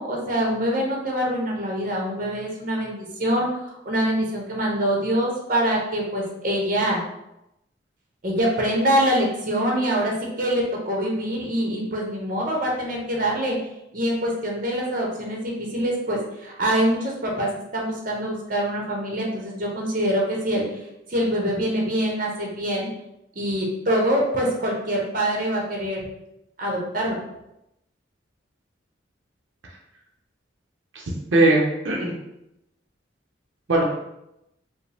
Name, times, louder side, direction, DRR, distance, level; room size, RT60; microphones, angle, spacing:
voice 1, 0.0-7.0 8.2-13.6 13.9-20.6 21.1-22.9 23.3-26.1 26.6-27.2, equal, 45° right, -2 dB, 0.9 m, -24 dB
voice 2, 31.3-32.1 33.7-33.8, right 2 dB, 80° right, -1 dB, 0.7 m, -19 dB
4.9 x 2.2 x 3.4 m, 0.85 s
head